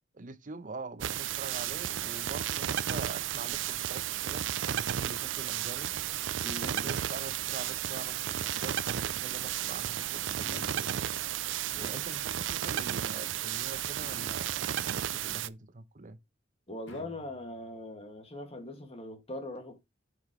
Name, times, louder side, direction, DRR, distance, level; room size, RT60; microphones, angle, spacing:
voice 1, 0.1-5.9 6.4-10.9 11.7-16.2, right 3 dB, 45° right, 0.9 m, -44 dB
sound 1, 1.0-15.5, right 11 dB, 80° right, 0.5 m, -33 dB
voice 2, 6.4-7.0 11.6-12.1 16.7-19.8, left 1 dB, 35° left, 2.2 m, -42 dB
sound 2, 10.3-11.2 14.0-14.7 16.9-17.6, left 2 dB, 85° left, 2.2 m, -49 dB
8.6 x 5.8 x 3.2 m
head